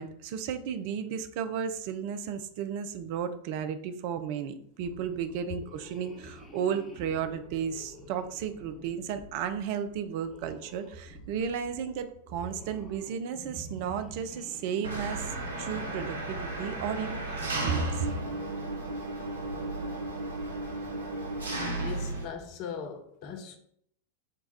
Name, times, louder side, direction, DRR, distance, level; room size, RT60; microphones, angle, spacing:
voice 1, 0.0-18.1, right 7 dB, 45° right, 0.4 m, -34 dB
sound 1, 4.7-17.2, left 1 dB, 15° left, 0.9 m, -50 dB
Engine, 14.8-22.2, right 2 dB, 75° right, 0.8 m, -34 dB
voice 2, 21.8-23.6, left 7 dB, 40° left, 0.6 m, -39 dB
5.2 x 2.3 x 3.9 m
figure-of-eight pair, 90°, 0 cm